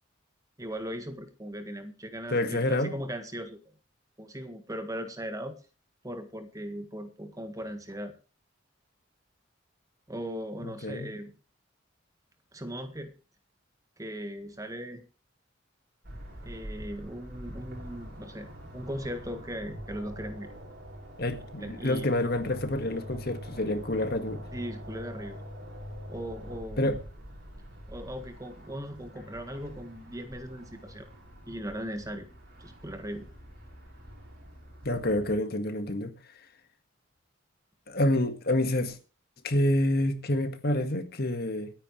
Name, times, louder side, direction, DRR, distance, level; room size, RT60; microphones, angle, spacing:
voice 1, 0.6-3.6 4.2-5.5 6.0-8.1 10.1-11.3 12.5-13.1 14.0-15.0 16.4-20.5 21.6-22.1 24.5-25.4 26.1-27.0 27.9-31.1 31.5-32.3 32.6-33.3, equal, 15° right, 1.7 m, -38 dB
voice 2, 2.3-2.9 10.6-11.1 21.2-24.4 26.8-27.0 34.8-36.1 37.9-39.0 39.4-41.7, left 1 dB, 50° left, 1.8 m, -28 dB
sound 1, 16.0-35.3, equal, 50° right, 6.7 m, -44 dB
26.5 x 9.9 x 3.3 m
head